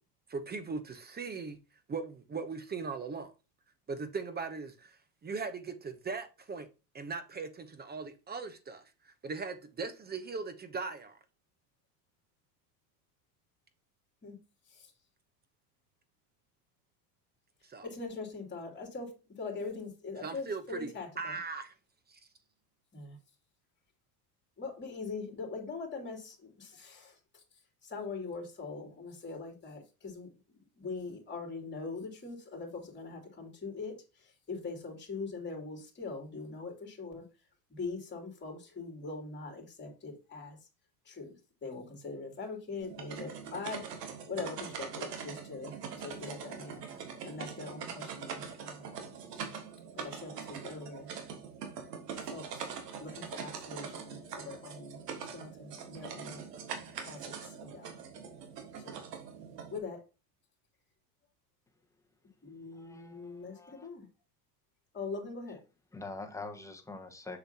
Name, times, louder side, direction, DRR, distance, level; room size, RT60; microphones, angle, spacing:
voice 1, 0.3-1.6 1.9-3.3 3.9-5.0 5.2-6.7 6.9-11.2 17.6-17.8 20.2-20.9 21.2-21.7 22.1-22.2, right 4 dB, 20° right, 0.8 m, -39 dB
voice 2, 17.8-21.4 22.9-23.2 24.6-27.4 27.8-37.2 37.7-40.6 41.0-46.8 47.2-49.5 50.0-51.1 52.2-52.7 53.0-55.0 55.3-56.4 56.9-57.9 58.8-59.0 59.7-60.0 62.4-64.1 64.9-65.6, left 4 dB, 25° left, 3.0 m, -42 dB
sound 1, 42.8-59.8, right 6 dB, 90° right, 1.5 m, -43 dB
voice 3, 62.7-63.9 65.9-67.4, left 3 dB, 5° left, 1.3 m, -45 dB
6.8 x 5.9 x 2.8 m
hypercardioid pair, 95°, 46 cm